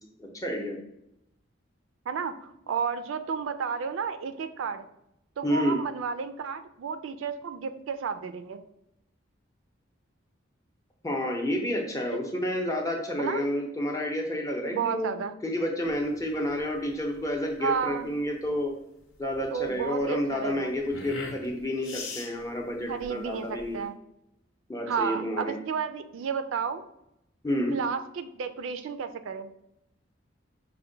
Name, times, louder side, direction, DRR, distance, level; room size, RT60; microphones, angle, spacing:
voice 1, 0.2-0.8 5.4-5.8 11.0-15.1 15.4-18.7 19.2-23.8 24.7-25.6 27.4-27.8, left 1 dB, 15° left, 1 dB, 0.6 m, -30 dB
voice 2, 2.1-4.9 5.4-8.6 13.2-13.4 14.7-15.3 17.6-18.1 19.5-20.7 22.9-23.9 24.9-26.8 27.7-29.5, right 6 dB, 80° right, 10 dB, 0.3 m, -32 dB
sound 1, 15.8-23.9, left 3 dB, 85° left, 0.9 m, -43 dB
5.4 x 2.1 x 3.8 m, 0.81 s
head